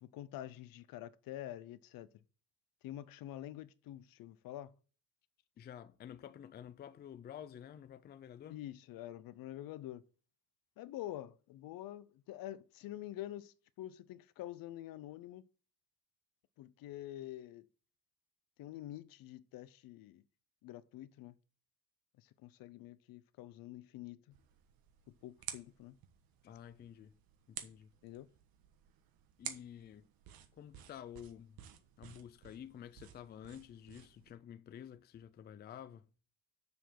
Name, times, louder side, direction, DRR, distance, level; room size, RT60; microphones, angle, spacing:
voice 1, 0.0-2.1 2.8-4.7 8.5-10.0 10.8-15.4 16.6-17.7 18.6-20.2 20.6-21.3 22.2-24.4 25.1-26.0 28.0-28.3, left 13 dB, 70° left, 0.7 m, -47 dB
voice 2, 5.6-8.6 26.4-27.1 27.5-27.9 29.4-30.1 30.5-31.6 32.0-36.1, left 9 dB, 30° left, 0.4 m, -51 dB
sound 1, 24.3-34.3, right 10 dB, 80° right, 1.4 m, -52 dB
7.1 x 6.8 x 6.0 m
cardioid pair, 165°, 35 cm